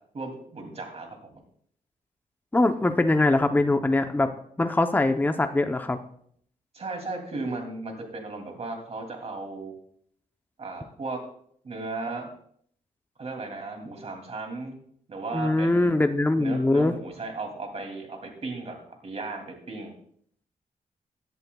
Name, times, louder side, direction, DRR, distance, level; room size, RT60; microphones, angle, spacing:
voice 1, 0.1-1.3 6.7-9.7 10.6-11.2 11.6-12.3 13.2-14.8 15.1-15.9 16.4-19.9, right 3 dB, 45° right, 3 dB, 2.8 m, -36 dB
voice 2, 2.5-4.3 4.6-6.0 15.3-16.9, left 2 dB, 10° left, 7 dB, 0.8 m, -22 dB
17.0 x 11.0 x 2.4 m, 0.65 s
cardioid pair, 95°, 14 cm